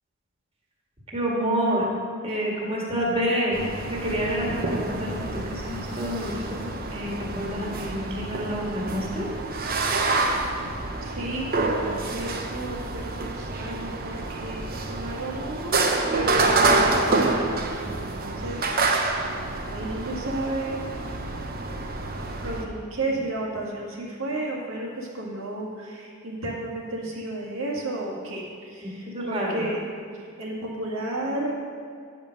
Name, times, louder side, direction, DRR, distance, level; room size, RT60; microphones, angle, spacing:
voice 1, 1.1-1.9 2.2-3.6 4.0-6.6 6.9-9.3 28.8-29.7, equal, 30° right, -3 dB, 1.7 m, -28 dB
sound 1, 3.5-22.6, right 3 dB, 45° right, 0.8 m, -27 dB
voice 2, 11.0-18.7 19.3-19.4 19.7-20.8 22.4-29.8 30.4-31.5, right 1 dB, 85° right, -4 dB, 1.8 m, -32 dB
9.3 x 5.2 x 6.4 m, 2.2 s
head